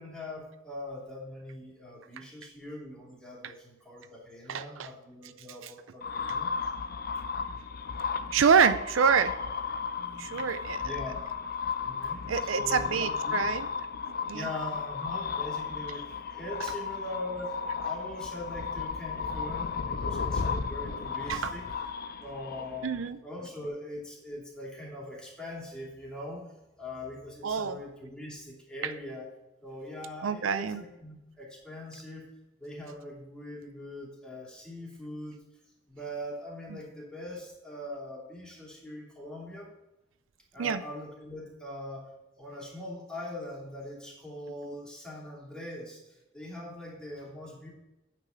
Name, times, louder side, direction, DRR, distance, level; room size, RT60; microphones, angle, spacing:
voice 1, 0.0-6.5 9.9-10.4 10.8-11.3 11.8-13.4 14.3-21.6 22.2-26.4 26.8-29.2 29.6-32.2 32.6-35.3 35.9-39.7 40.5-42.1 42.4-47.7, left 1 dB, 5° left, -5 dB, 2.9 m, -42 dB
voice 2, 4.5-4.9 5.6-5.7 8.3-9.3 10.2-10.9 12.3-13.7 14.3-14.5 15.9-16.0 21.3-21.5 22.8-23.2 27.4-27.8 28.8-28.9 30.2-30.8 36.7-36.8 40.6-40.8, right 6 dB, 80° right, 12 dB, 0.5 m, -27 dB
sound 1, 6.0-23.1, left 5 dB, 50° left, 0.6 m, -34 dB
8.8 x 6.1 x 5.7 m, 1.0 s
head